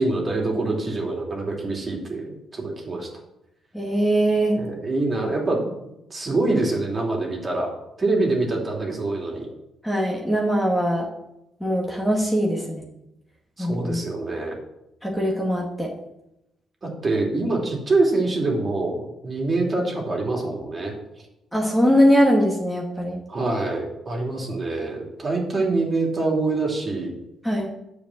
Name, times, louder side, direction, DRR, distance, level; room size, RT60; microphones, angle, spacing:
voice 1, 0.0-3.1 4.5-5.7 6.1-7.7 8.0-9.5 13.6-14.6 16.8-20.9 23.3-27.1, right 2 dB, 30° right, -1 dB, 2.9 m, -25 dB
voice 2, 3.7-4.6 9.8-11.1 11.6-12.8 13.6-14.0 15.0-15.9 21.5-23.2 27.4-27.7, equal, 5° left, -2 dB, 2.0 m, -21 dB
8.9 x 5.0 x 7.7 m, 0.87 s
cardioid pair, 90°, 0 cm